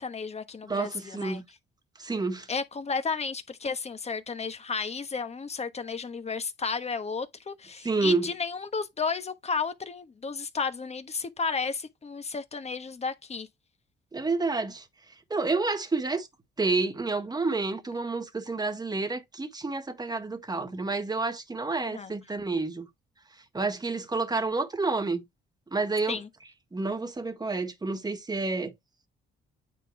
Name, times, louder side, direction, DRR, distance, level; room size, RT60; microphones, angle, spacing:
voice 1, 0.0-1.4 2.5-13.5 21.8-22.1 26.1-26.3, left 5 dB, 35° left, 1.2 m, -33 dB
voice 2, 0.7-1.4 2.0-2.5 7.8-8.3 14.1-14.8 15.3-16.3 16.6-22.9 23.5-25.2 25.7-26.2 26.7-28.7, right 3 dB, 20° right, 1.6 m, -29 dB
9.1 x 3.8 x 3.3 m
cardioid pair, 90°, 20 cm